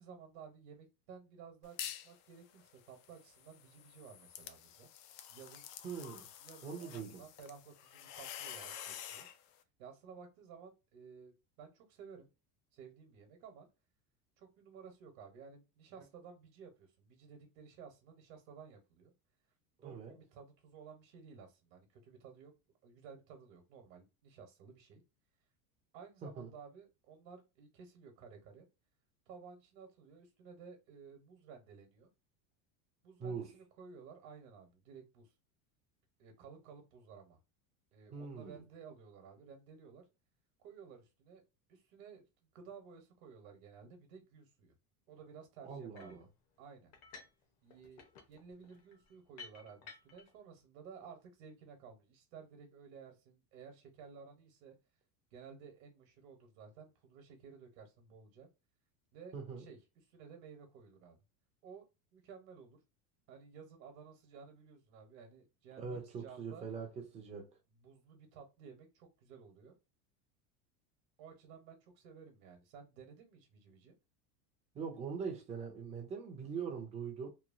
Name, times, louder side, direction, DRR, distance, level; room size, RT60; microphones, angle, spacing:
voice 1, 0.0-4.9 5.3-5.7 6.4-9.3 9.8-12.3 12.7-13.7 14.4-19.1 19.8-22.5 22.8-25.0 25.9-28.7 29.3-32.1 33.0-35.3 36.2-37.4 37.9-40.0 40.6-41.4 41.7-42.3 42.5-44.7 45.1-46.3 46.6-46.9 47.6-54.7 55.3-58.5 59.1-59.8 60.1-61.2 61.6-61.8 62.1-62.8 63.3-66.6 67.8-69.7 71.2-74.0, right 6 dB, 65° right, 1.1 m, -55 dB
sound 1, 1.6-2.1 2.5-9.4, left 10 dB, 85° left, 0.6 m, -48 dB
voice 2, 5.8-6.3 6.6-7.2 19.8-20.2 26.2-26.5 33.2-33.5 38.1-38.6 45.6-46.2 59.3-59.7 65.8-67.5 74.7-77.3, right 6 dB, 15° right, 0.4 m, -42 dB
sound 2, 45.9-46.3 46.9-47.4 47.7-50.3, left 5 dB, 35° left, 0.6 m, -54 dB
3.0 x 2.3 x 2.4 m
supercardioid pair, 155°, 45 cm